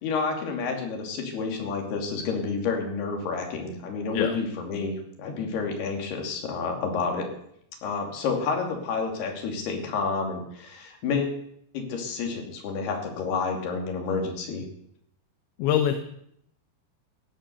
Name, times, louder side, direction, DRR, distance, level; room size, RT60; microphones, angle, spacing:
voice 1, 0.0-7.3 7.8-11.4 11.7-14.7, left 4 dB, 60° left, 2 dB, 4.5 m, -29 dB
voice 2, 15.6-15.9, left 10 dB, 75° left, 7 dB, 3.2 m, -23 dB
16.0 x 12.0 x 6.9 m, 0.72 s
omnidirectional pair, 5.5 m